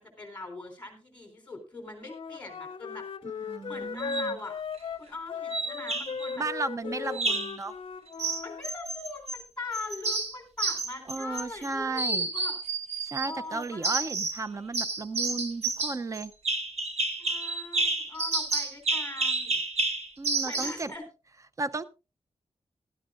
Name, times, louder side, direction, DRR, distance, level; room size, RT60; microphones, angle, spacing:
voice 1, 0.0-3.1 3.4-4.5 5.0-6.5 6.8-7.4 8.4-12.6 13.2-13.9 17.2-19.6 20.4-21.1, left 3 dB, 15° left, 4 dB, 3.6 m, -41 dB
Wind instrument woodwind instrument, 2.0-8.6, left 6 dB, 55° left, 0.5 m, -37 dB
voice 2, 3.5-4.4 6.4-7.7 11.1-12.3 13.0-16.3 20.2-20.9 21.6-21.8, right 3 dB, 30° right, 13 dB, 0.6 m, -34 dB
sound 1, 4.0-4.3 5.5-6.3 7.1-7.6 8.2-9.4 9.7-11.7 12.0-13.3 13.8-14.4 14.7-20.8, right 3 dB, 70° right, 1.8 m, -30 dB
16.5 x 12.5 x 2.5 m, 0.30 s
wide cardioid pair, 170°, 11 cm